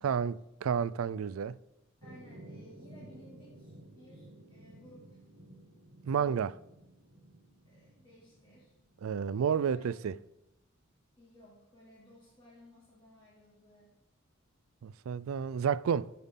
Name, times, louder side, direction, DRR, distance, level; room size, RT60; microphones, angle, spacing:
voice 1, 0.0-1.6 6.1-6.5 9.0-10.2 14.8-16.1, right 7 dB, 80° right, 0.3 m, -31 dB
voice 2, 2.0-5.2 6.0-6.4 7.6-8.7 9.4-10.0 11.2-13.9, left 1 dB, 20° left, 1.9 m, -58 dB
sound 1, 2.0-9.8, right 1 dB, 55° right, 1.8 m, -54 dB
14.0 x 5.7 x 3.6 m
head